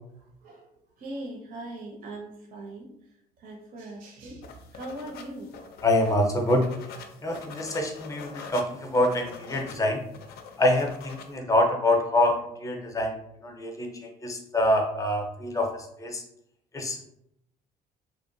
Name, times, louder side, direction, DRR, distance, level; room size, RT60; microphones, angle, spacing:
voice 1, 1.0-2.9 3.4-5.7, right 1 dB, 55° right, 1 dB, 0.5 m, -40 dB
sound 1, 4.4-11.4, left 5 dB, 70° left, 0.4 m, -44 dB
voice 2, 5.8-6.7 7.2-10.0 10.6-13.2 13.4-16.2 16.7-17.1, left 1 dB, 20° left, 2 dB, 0.5 m, -25 dB
2.8 x 2.1 x 2.6 m, 0.76 s
cardioid pair, 110°, 17 cm